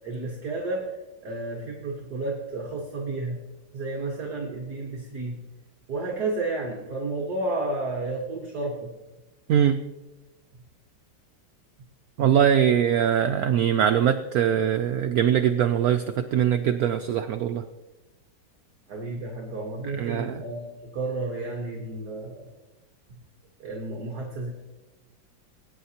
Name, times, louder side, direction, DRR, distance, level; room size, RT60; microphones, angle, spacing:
voice 1, 0.0-3.4 3.7-5.4 5.9-8.9 18.9-22.5 23.6-24.5, right 2 dB, 55° right, -1 dB, 1.8 m, -32 dB
voice 2, 12.2-17.6 20.0-20.4, right 9 dB, 80° right, 8 dB, 0.8 m, -22 dB
20.0 x 9.2 x 2.9 m, 1.1 s
omnidirectional pair, 2.1 m